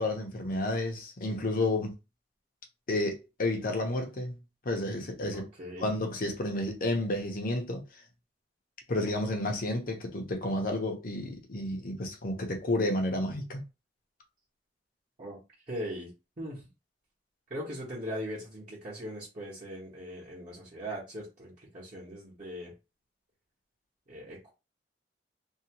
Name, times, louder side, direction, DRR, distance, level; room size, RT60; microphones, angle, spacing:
voice 1, 0.0-1.9 2.9-4.4 4.6-5.5 5.8-7.8 8.9-13.6, left 1 dB, 55° left, 0.7 m, -31 dB
voice 2, 5.3-5.9 15.2-15.4 15.7-16.1 16.4-16.6 17.5-22.7 24.1-24.5, equal, 45° right, 1.1 m, -40 dB
2.7 x 2.3 x 2.8 m
head